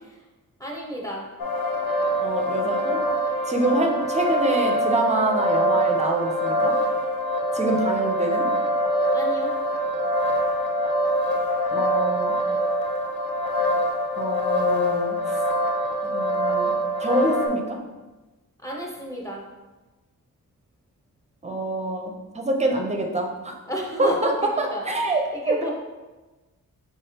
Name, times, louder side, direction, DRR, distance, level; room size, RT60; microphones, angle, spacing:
voice 1, 0.6-1.3 9.1-9.5 18.6-19.5 23.7-25.7, equal, 10° left, -3 dB, 0.8 m, -32 dB
sound 1, 1.4-17.5, equal, 75° left, 0.7 m, -24 dB
voice 2, 2.2-3.0 3.5-6.7 7.5-8.5 11.7-12.3 14.1-15.4 16.0-16.7 17.0-17.8 21.4-23.5 24.0-24.3 24.6-25.6, right 2 dB, 20° right, 2 dB, 0.5 m, -25 dB
4.8 x 3.4 x 2.8 m, 1.2 s
wide cardioid pair, 120°, 36 cm